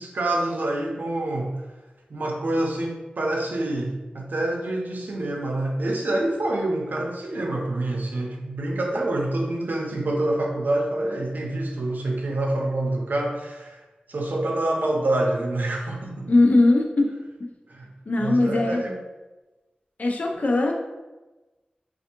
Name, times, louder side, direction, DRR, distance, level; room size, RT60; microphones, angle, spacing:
voice 1, 0.0-1.5 2.1-13.8 14.1-16.3 17.7-17.9 18.2-18.9, right 1 dB, 80° right, 0 dB, 0.6 m, -26 dB
voice 2, 16.3-17.1 17.4-17.5 18.1-18.8 20.0-20.7, left 2 dB, 55° left, 1 dB, 0.5 m, -20 dB
3.3 x 2.4 x 2.8 m, 1.1 s
wide cardioid pair, 85°, 3 cm